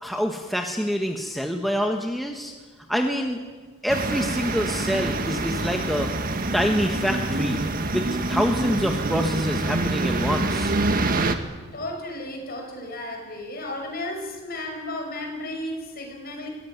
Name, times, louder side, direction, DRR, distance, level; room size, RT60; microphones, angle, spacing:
voice 1, 0.0-2.5 2.9-3.4 3.8-6.1 6.5-7.6 7.9-10.7, equal, ahead, 2 dB, 1.4 m, -26 dB
sound 1, 3.9-11.3, right 2 dB, 40° right, 1.6 m, -26 dB
voice 2, 11.7-16.5, left 1 dB, 45° left, 2 dB, 6.0 m, -33 dB
23.5 x 18.0 x 9.6 m, 1.4 s
head